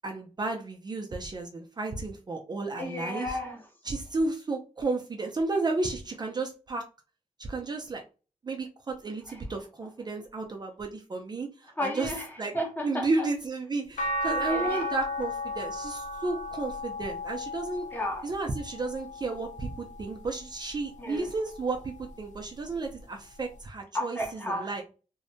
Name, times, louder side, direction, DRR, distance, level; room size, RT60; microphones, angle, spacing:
voice 1, 0.0-3.4 3.8-6.8 7.4-8.0 8.4-12.1 12.4-12.5 12.8-17.9 18.2-24.8, right 3 dB, 35° right, 1 dB, 0.4 m, -32 dB
voice 2, 2.8-3.6 9.3-9.4 11.8-13.1 14.3-14.9 17.9-18.2 21.0-21.3 23.9-24.8, left 1 dB, 15° left, 1 dB, 0.7 m, -33 dB
sound 1, 14.0-20.3 20.8-22.2 23.6-23.7, left 1 dB, 75° left, 0.5 m, -35 dB
2.6 x 2.1 x 2.6 m, 0.34 s
wide cardioid pair, 110°, 13 cm